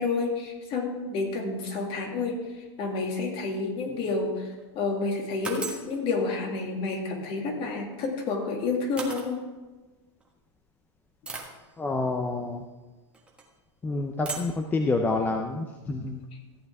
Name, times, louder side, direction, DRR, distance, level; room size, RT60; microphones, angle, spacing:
voice 1, 0.0-2.4 2.8-4.5 4.7-9.4, left 3 dB, 40° left, 2 dB, 2.2 m, -29 dB
sound 1, 4.3-4.6 5.4-5.9 7.9-8.1 9.0-9.3 10.2-10.3 11.3-11.6 13.1-13.5 14.3-14.6, right 3 dB, 5° right, 1.4 m, -36 dB
voice 2, 11.8-12.6 13.8-16.2, left 3 dB, 10° left, 4 dB, 0.6 m, -28 dB
14.5 x 8.2 x 3.6 m, 1.2 s
supercardioid pair, 140°, 15 cm